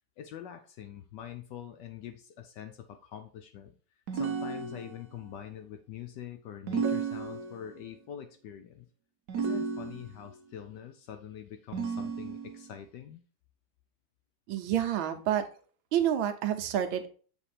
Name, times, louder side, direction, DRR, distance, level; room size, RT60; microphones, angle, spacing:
voice 1, 0.2-3.8 4.1-8.9 9.4-13.2, left 10 dB, 70° left, 8 dB, 1.0 m, -44 dB
sound 1, 4.1-5.2 6.7-7.8 9.3-10.3 11.7-12.7, right 5 dB, 60° right, 1.2 m, -33 dB
voice 2, 14.5-15.4 15.9-17.1, right 10 dB, 80° right, 8 dB, 1.5 m, -28 dB
7.1 x 3.5 x 4.1 m, 0.40 s
omnidirectional pair, 2.2 m